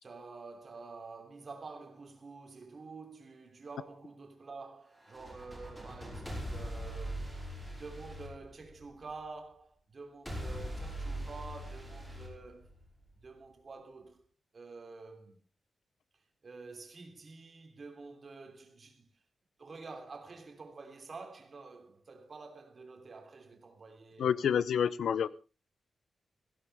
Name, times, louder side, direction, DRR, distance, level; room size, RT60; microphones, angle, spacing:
voice 1, 0.0-7.3 7.7-12.7 13.2-14.2 14.5-15.4 16.4-19.1 19.6-24.5 25.0-25.2, right 4 dB, 35° right, 3.1 m, -48 dB
sound 1, 5.0-9.1 10.3-13.1, equal, 5° left, 5.5 m, -41 dB
voice 2, 24.2-25.3, left 8 dB, 80° left, 0.7 m, -28 dB
18.0 x 15.5 x 3.5 m
wide cardioid pair, 175°, 0 cm